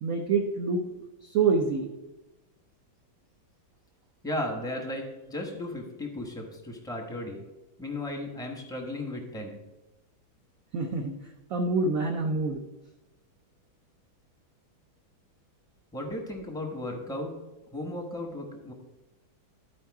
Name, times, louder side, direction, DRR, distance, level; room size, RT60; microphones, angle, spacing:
voice 1, 0.0-0.8 1.3-1.9 10.7-11.1 11.5-12.6, right 4 dB, 65° right, 3 dB, 0.9 m, -26 dB
voice 2, 4.2-7.4 7.8-9.6 15.9-17.3 17.7-18.7, left 1 dB, 5° left, 0 dB, 0.7 m, -35 dB
11.5 x 4.5 x 4.7 m, 1.0 s
omnidirectional pair, 2.1 m